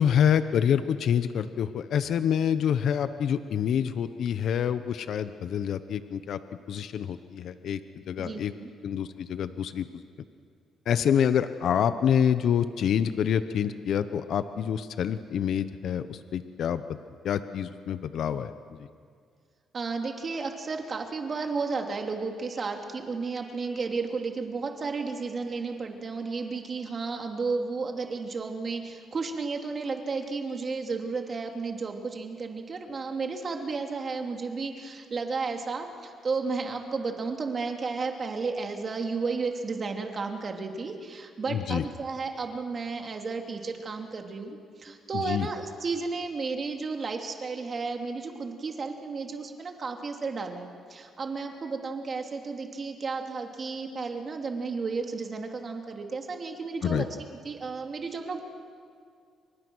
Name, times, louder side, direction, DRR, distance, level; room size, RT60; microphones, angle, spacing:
voice 1, 0.0-6.4 6.7-7.8 8.1-8.5 8.8-9.9 10.9-17.0 17.2-18.5 41.5-41.8 45.1-45.5 56.8-57.0, left 8 dB, 70° left, 11 dB, 1.0 m, -27 dB
voice 2, 8.2-8.7 19.7-57.1 57.4-58.4, right 4 dB, 40° right, 3 dB, 2.8 m, -33 dB
29.5 x 25.5 x 6.4 m, 2.2 s
cardioid pair, 90°, 0 cm